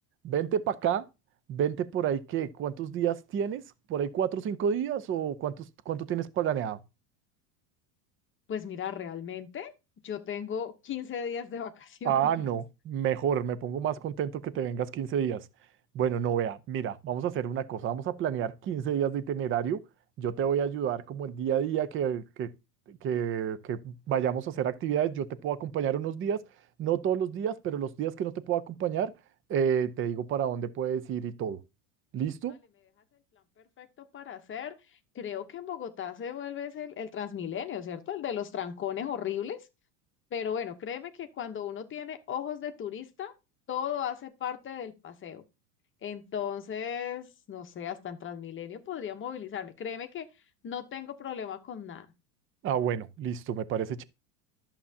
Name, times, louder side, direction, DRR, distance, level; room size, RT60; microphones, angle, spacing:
voice 1, 0.2-1.1 1.5-3.6 3.9-6.8 12.0-15.5 15.9-19.8 20.2-22.5 22.9-26.4 26.8-29.1 29.5-31.6 32.1-32.5 52.6-54.0, right 9 dB, 25° right, 0.6 m, -30 dB
voice 2, 8.5-9.7 10.0-12.1 33.8-34.8 35.1-39.6 40.3-43.3 43.7-45.4 46.0-50.3 50.6-52.1, left 8 dB, 25° left, 0.9 m, -36 dB
11.0 x 7.2 x 2.8 m
supercardioid pair, 130°, 46 cm